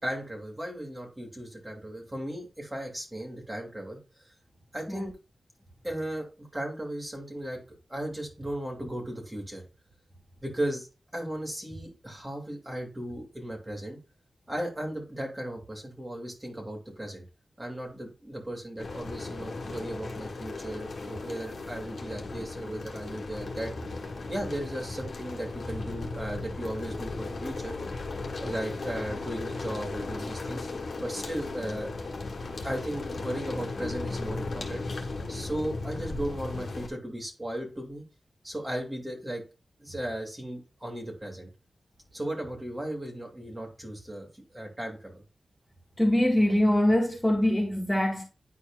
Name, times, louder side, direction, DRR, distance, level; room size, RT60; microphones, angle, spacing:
voice 1, 0.0-4.3 4.7-5.1 5.8-7.6 7.9-9.6 10.4-10.9 11.1-14.0 14.5-17.2 17.6-23.7 24.3-27.8 28.3-30.7 31.0-31.9 32.6-34.8 35.3-38.0 38.4-39.4 39.8-41.5 42.1-45.2, right 1 dB, 20° right, 2.7 m, -36 dB
sound 1, 18.8-36.9, left 3 dB, 65° left, 1.5 m, -36 dB
voice 2, 46.0-48.2, left 1 dB, 10° left, 1.9 m, -23 dB
9.9 x 4.5 x 2.5 m
wide cardioid pair, 70°, 0 cm